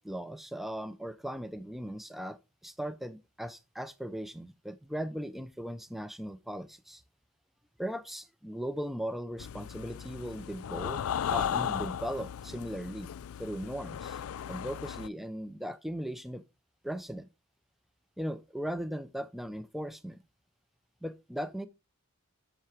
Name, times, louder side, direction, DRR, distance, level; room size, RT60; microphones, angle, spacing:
voice 1, 0.0-7.0 7.8-11.0 11.3-13.1 13.4-14.2 14.5-16.4 16.8-17.3 18.2-20.2 21.0-21.7, equal, ahead, 0.4 m, -38 dB
sound 1, 9.4-15.1, left 8 dB, 70° left, 0.4 m, -36 dB
7.5 x 6.7 x 4.7 m
head